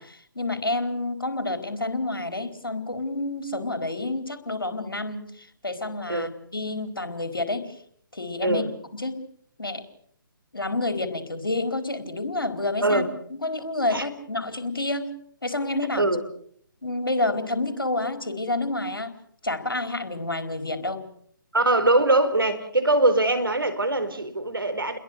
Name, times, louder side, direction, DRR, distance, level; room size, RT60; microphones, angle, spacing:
voice 1, 0.0-7.8 8.1-9.2 9.6-9.8 10.5-15.1 15.4-16.0 16.8-19.2 19.4-21.1, left 2 dB, 75° left, 7 dB, 4.4 m, -29 dB
voice 2, 21.5-25.0, right 2 dB, 75° right, 10 dB, 4.2 m, -22 dB
30.0 x 22.0 x 6.6 m, 0.65 s
figure-of-eight pair, 140°, 12 cm